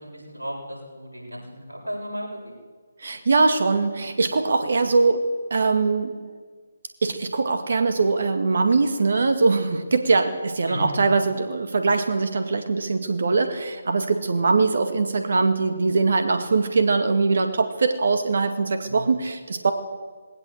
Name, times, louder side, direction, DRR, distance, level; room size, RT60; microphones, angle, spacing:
voice 1, 0.0-2.5 10.7-10.8 18.9-19.1, equal, 90° right, -1 dB, 7.8 m, -35 dB
voice 2, 3.0-5.3 5.5-6.1 7.0-19.7, right 4 dB, 60° right, 8 dB, 2.0 m, -22 dB
19.5 x 18.0 x 8.0 m, 1.5 s
figure-of-eight pair, 145°, 0 cm